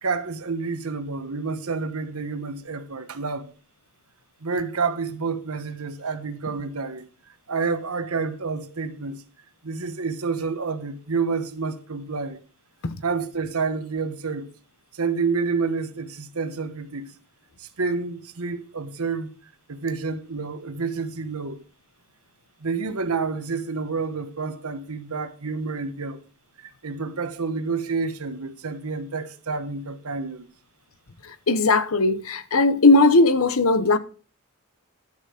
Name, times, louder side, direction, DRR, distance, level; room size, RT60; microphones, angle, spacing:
voice 1, 0.0-3.5 4.4-7.1 7.5-9.2 9.6-12.4 13.0-14.5 14.9-17.1 17.6-19.4 19.7-21.6 22.6-26.2 26.6-30.5, right 4 dB, 80° right, 1.2 m, -29 dB
voice 2, 31.2-34.0, left 2 dB, 70° left, 0.9 m, -18 dB
12.0 x 6.7 x 5.0 m
head